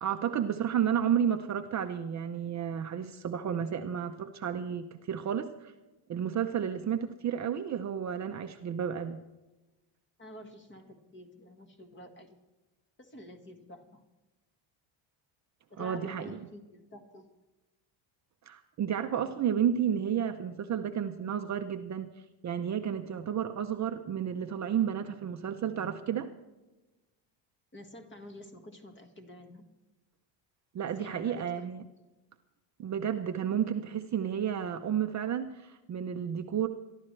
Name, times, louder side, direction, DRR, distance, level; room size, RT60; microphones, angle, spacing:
voice 1, 0.0-5.7 6.1-9.2 15.8-16.4 18.5-22.1 22.4-26.3 30.7-31.8 32.8-36.7, right 8 dB, 35° right, 6 dB, 0.7 m, -31 dB
voice 2, 10.2-12.4 13.0-14.0 15.7-17.3 27.7-29.6 30.8-31.9, left 1 dB, 25° left, 5 dB, 1.8 m, -49 dB
23.5 x 12.0 x 3.3 m, 1.1 s
cardioid pair, 140°, 48 cm